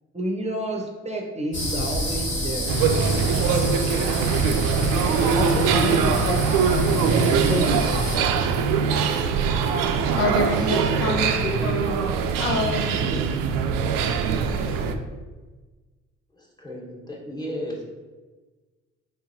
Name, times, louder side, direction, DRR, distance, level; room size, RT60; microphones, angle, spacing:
voice 1, 0.1-2.8, right 1 dB, 20° right, 0 dB, 0.7 m, -30 dB
sound 1, 1.5-8.2, left 1 dB, 35° left, 1.5 m, -28 dB
sound 2, 2.7-14.9, right 6 dB, 65° right, 0.5 m, -22 dB
voice 2, 2.9-3.4 5.1-6.8 7.5-7.6 10.2-12.1 12.4-13.2 14.5-14.9, left 2 dB, 85° left, 1 dB, 0.6 m, -28 dB
voice 3, 16.3-17.8, equal, 10° left, -3 dB, 1.3 m, -34 dB
3.8 x 3.5 x 2.7 m, 1.3 s
hypercardioid pair, 45°, 36 cm